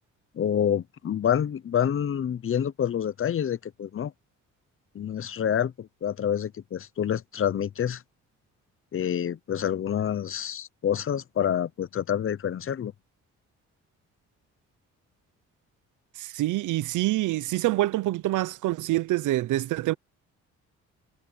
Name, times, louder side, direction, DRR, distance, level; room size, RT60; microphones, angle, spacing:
voice 1, 0.3-4.1 4.9-8.0 8.9-12.9, left 9 dB, 45° left, 0.9 m, -27 dB
voice 2, 16.2-19.9, right 16 dB, 80° right, 0.8 m, -26 dB
cardioid pair, 90°, 30 cm